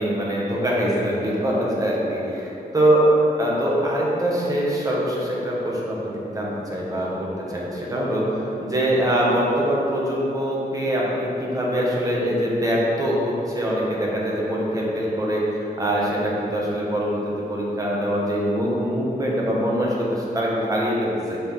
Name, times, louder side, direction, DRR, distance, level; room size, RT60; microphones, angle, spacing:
voice 1, 0.0-3.0 3.4-21.4, equal, 20° right, -5 dB, 1.0 m, -23 dB
5.6 x 3.2 x 5.6 m, 2.9 s
wide cardioid pair, 180°, 16 cm